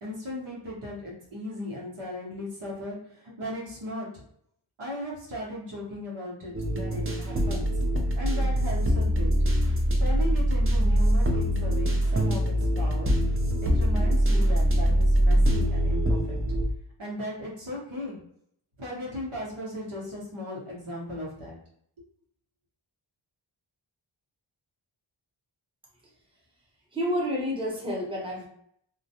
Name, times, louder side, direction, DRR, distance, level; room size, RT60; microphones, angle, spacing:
voice 1, 0.0-3.0 3.4-4.1 4.8-7.7 8.2-9.3 10.0-13.1 13.6-16.4 17.0-18.2 18.8-21.6, left 1 dB, 85° right, -4 dB, 1.1 m, -37 dB
sound 1, 6.5-16.7, equal, 30° right, 0.4 m, -23 dB
voice 2, 26.9-28.5, equal, 10° right, -3 dB, 0.8 m, -29 dB
2.3 x 2.1 x 2.8 m, 0.69 s
wide cardioid pair, 70°, 49 cm